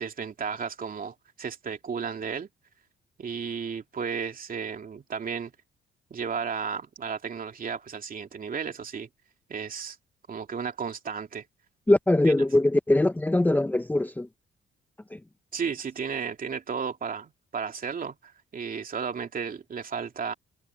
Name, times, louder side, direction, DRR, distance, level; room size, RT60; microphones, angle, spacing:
voice 1, 0.0-2.5 3.2-5.5 6.1-9.1 9.5-10.0 10.3-11.4 15.5-20.3, right 6 dB, 45° right, 2.8 m, -33 dB
voice 2, 11.9-14.3 15.1-15.2, left 1 dB, 10° left, 0.7 m, -22 dB
cardioid pair, 90°, 20 cm